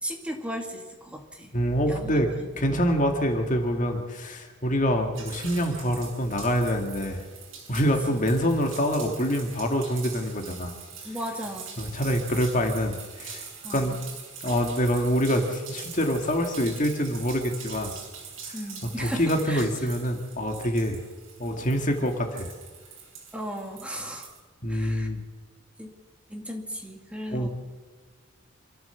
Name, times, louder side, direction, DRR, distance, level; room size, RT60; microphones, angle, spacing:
voice 1, 0.0-1.5 1.9-2.8 8.1-8.3 11.0-11.7 13.6-14.0 18.5-19.7 23.3-24.4 24.7-25.1 25.8-25.9 26.3-27.5, equal, 5° right, 2 dB, 2.3 m, -36 dB
voice 2, 1.5-2.3 2.6-7.2 7.7-10.8 11.8-14.0 14.4-17.9 18.5-18.6 19.0-21.0 21.4-22.5 24.6-25.2 27.3-27.5, equal, 40° left, 4 dB, 2.2 m, -26 dB
sound 1, 5.1-24.4, right 6 dB, 65° right, 7.4 m, -43 dB
27.5 x 13.5 x 7.2 m, 1.4 s
head